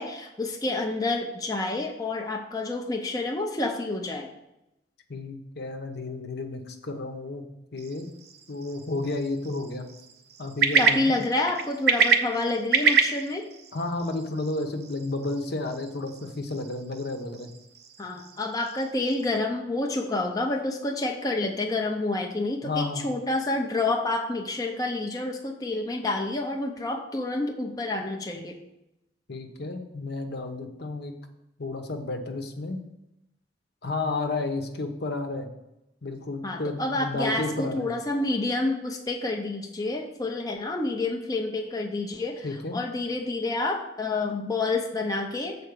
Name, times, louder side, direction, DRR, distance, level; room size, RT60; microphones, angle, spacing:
voice 1, 0.0-4.3 10.7-13.5 18.0-28.6 36.4-45.6, left 2 dB, 20° left, 1 dB, 0.7 m, -28 dB
voice 2, 5.1-7.4 7.7-8.1 8.5-9.9 10.4-11.1 13.7-17.5 22.6-23.0 29.3-31.1 31.6-32.8 33.8-35.5 36.0-37.9 42.4-42.8, left 2 dB, 60° left, 5 dB, 1.0 m, -32 dB
sound 1, 7.8-19.4, right 5 dB, 60° right, 0.7 m, -29 dB
7.1 x 4.3 x 6.7 m, 0.88 s
head